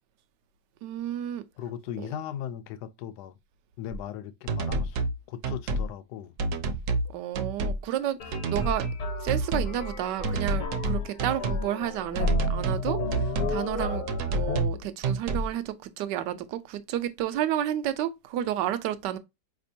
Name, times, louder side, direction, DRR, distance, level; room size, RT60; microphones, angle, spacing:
voice 1, 0.8-1.4 2.0-2.1 7.1-8.9 9.2-19.2, right 11 dB, 90° right, 1.2 m, -31 dB
voice 2, 1.6-3.4 3.8-6.3, left 10 dB, 75° left, 1.1 m, -38 dB
sound 1, 3.9-4.0 4.5-5.2 5.4-5.9 6.4-7.1 7.3-7.8 8.3-9.0 9.3-9.8 10.2-11.6 12.1-12.8 13.1-13.6 14.1-14.8 15.0-15.5, right 2 dB, 65° right, 0.8 m, -28 dB
sound 2, 8.2-14.6, left 1 dB, 55° left, 1.3 m, -32 dB
5.0 x 3.4 x 2.6 m
omnidirectional pair, 1.8 m